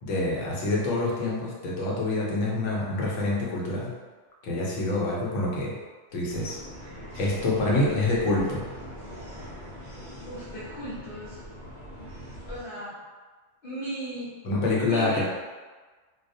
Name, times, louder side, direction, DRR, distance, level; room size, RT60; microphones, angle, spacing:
voice 1, 0.0-3.9 4.4-5.7 6.1-6.6 7.1-8.6 14.4-15.2, left 2 dB, 80° left, -5 dB, 1.0 m, -26 dB
sound 1, 6.3-12.6, equal, 60° right, 0.5 m, -42 dB
voice 2, 10.3-11.4 12.5-13.0 13.6-14.4 14.7-15.2, right 1 dB, 55° left, -12 dB, 0.8 m, -36 dB
2.4 x 2.0 x 2.6 m, 1.4 s
omnidirectional pair, 1.3 m